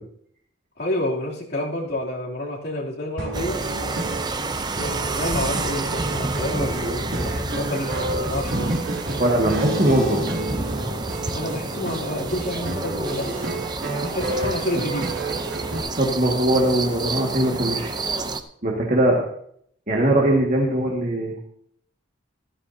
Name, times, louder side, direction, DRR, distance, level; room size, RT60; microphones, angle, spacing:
voice 1, 0.8-3.6 4.8-8.7 11.3-13.3 14.1-15.1, left 1 dB, 55° left, -4 dB, 3.0 m, -29 dB
sound 1, 3.2-15.8, right 1 dB, 90° right, 2.6 m, -31 dB
sound 2, 3.3-18.4, right 3 dB, 20° right, 0.6 m, -29 dB
voice 2, 9.2-10.4 16.0-17.9 18.6-19.2 19.9-21.4, right 1 dB, 40° right, -2 dB, 1.9 m, -21 dB
14.0 x 13.0 x 2.8 m, 0.67 s
head